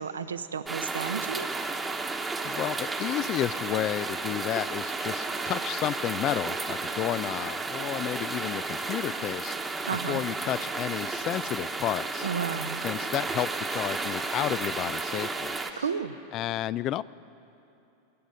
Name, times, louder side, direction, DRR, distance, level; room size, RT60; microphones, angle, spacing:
voice 1, 0.0-1.5 9.8-10.2 12.2-12.8 15.8-16.2, right 6 dB, 90° right, 10 dB, 0.7 m, -32 dB
sound 1, 0.7-15.7, right 3 dB, 15° right, 1.1 m, -33 dB
voice 2, 2.4-9.6 10.1-12.3 12.8-15.8 16.3-17.0, left 13 dB, 40° left, 19 dB, 0.4 m, -31 dB
23.0 x 10.0 x 5.3 m, 2.8 s
hypercardioid pair, 100°, 0 cm